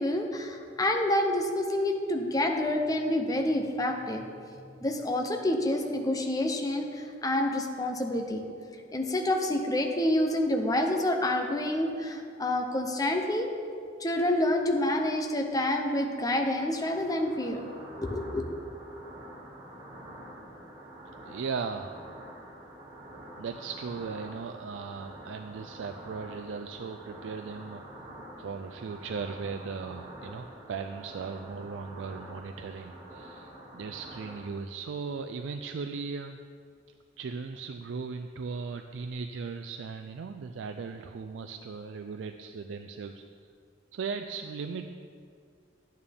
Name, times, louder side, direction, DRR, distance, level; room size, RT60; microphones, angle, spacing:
voice 1, 0.0-4.2 4.8-8.5 8.9-13.5 14.0-17.6 18.0-18.5, left 1 dB, 20° left, 3 dB, 0.7 m, -28 dB
sound 1, 15.9-34.5, right 1 dB, 20° right, 1.4 m, -47 dB
voice 2, 21.2-22.0 23.4-28.1 28.4-36.4 37.2-43.2 43.9-44.9, right 5 dB, 85° right, 6 dB, 0.4 m, -37 dB
11.0 x 8.9 x 3.6 m, 2.3 s
head